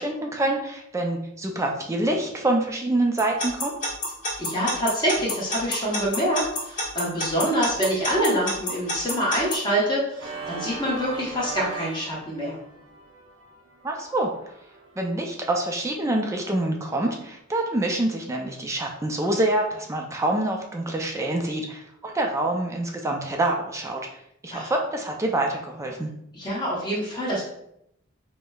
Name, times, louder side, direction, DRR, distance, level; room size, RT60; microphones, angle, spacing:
voice 1, 0.0-3.7 13.8-14.3 15.0-24.0 24.4-26.1, right 1 dB, 15° right, 1 dB, 0.3 m, -26 dB
Alarm / Clock, 3.2-9.5, left 1 dB, 40° left, 1.3 m, -27 dB
voice 2, 4.4-12.6 24.5-24.7 26.3-27.4, equal, 20° left, -6 dB, 0.9 m, -26 dB
Organ, 10.1-15.0, right 4 dB, 75° right, 0.6 m, -39 dB
4.9 x 2.1 x 2.2 m, 0.77 s
head